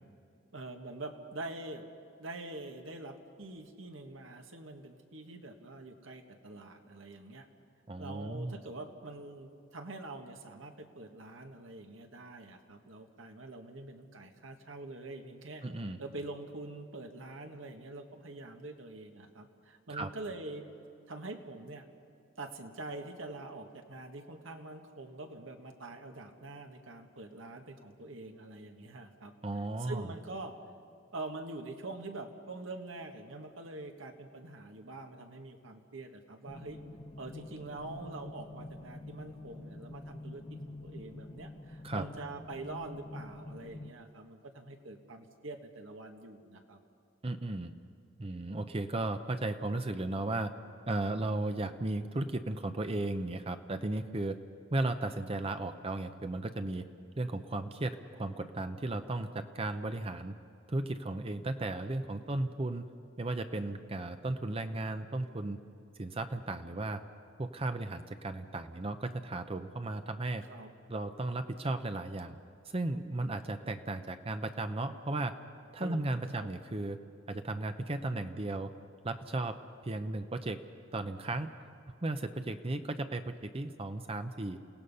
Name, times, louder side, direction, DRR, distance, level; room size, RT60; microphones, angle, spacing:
voice 1, 0.5-1.8 2.2-7.5 8.0-15.6 16.0-20.7 21.1-21.9 22.4-29.3 29.8-30.6 31.1-36.8 37.2-46.8 70.5-70.7 75.8-76.5, right 2 dB, 80° right, 4 dB, 1.7 m, -45 dB
voice 2, 7.9-8.6 15.6-16.0 19.9-20.1 29.4-30.1 41.8-42.1 47.2-47.7 48.2-50.5 50.9-54.4 54.7-56.9 57.2-60.3 60.7-62.8 63.2-65.6 66.0-67.0 67.4-70.4 70.9-72.3 72.7-75.3 75.7-77.0 77.3-78.7 79.0-80.6 80.9-81.5 82.0-84.6, right 2 dB, 30° right, 8 dB, 0.7 m, -35 dB
sound 1, 36.5-43.9, left 2 dB, 25° left, 0.7 m, -47 dB
29.0 x 17.5 x 5.6 m, 2.6 s
head